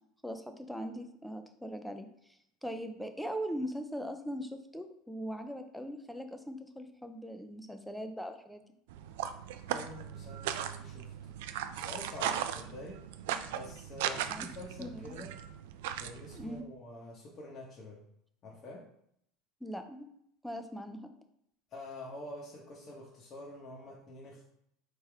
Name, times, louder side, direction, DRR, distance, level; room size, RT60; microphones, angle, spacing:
voice 1, 0.2-2.1 2.6-8.6 14.1-14.5 14.8-15.2 16.3-16.7 19.6-20.1 20.4-21.1, equal, ahead, 7 dB, 0.4 m, -40 dB
sound 1, 8.9-16.6, right 10 dB, 85° right, 0.3 m, -38 dB
voice 2, 9.7-11.4 11.7-13.0 13.5-15.3 16.0-18.0 18.4-18.8 21.7-24.5, left 1 dB, 35° left, -5 dB, 1.0 m, -47 dB
4.3 x 3.4 x 3.4 m, 0.72 s
supercardioid pair, 140°, 0 cm